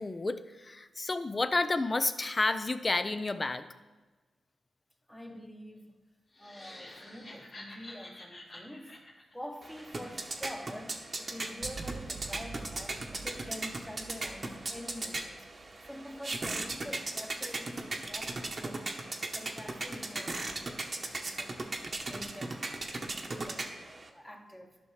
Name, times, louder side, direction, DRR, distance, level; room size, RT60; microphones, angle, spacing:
voice 1, 0.0-3.7, left 3 dB, 35° left, 11 dB, 0.5 m, -30 dB
voice 2, 5.1-6.0 6.4-9.0 9.3-19.0 19.3-21.5 22.1-23.0 23.3-23.7 24.1-24.8, equal, 5° left, 3 dB, 1.1 m, -46 dB
sound 1, 6.3-10.5, left 1 dB, 50° left, 1.9 m, -50 dB
sound 2, 9.6-24.1, right 2 dB, 45° right, 0.9 m, -38 dB
sound 3, 11.6-16.8, right 5 dB, 70° right, 0.4 m, -48 dB
11.0 x 5.7 x 3.3 m, 1.2 s
supercardioid pair, 50°, 0 cm